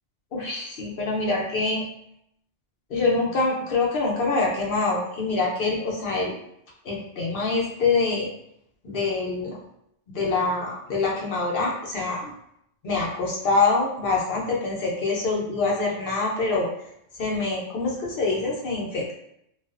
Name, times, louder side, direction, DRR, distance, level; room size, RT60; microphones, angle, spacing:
voice 1, 0.3-1.8 2.9-6.3 6.8-8.3 8.8-9.6 10.1-12.3 12.8-16.7 17.2-19.1, left 3 dB, 55° left, -3 dB, 0.7 m, -25 dB
2.3 x 2.3 x 2.3 m, 0.74 s
omnidirectional pair, 1.3 m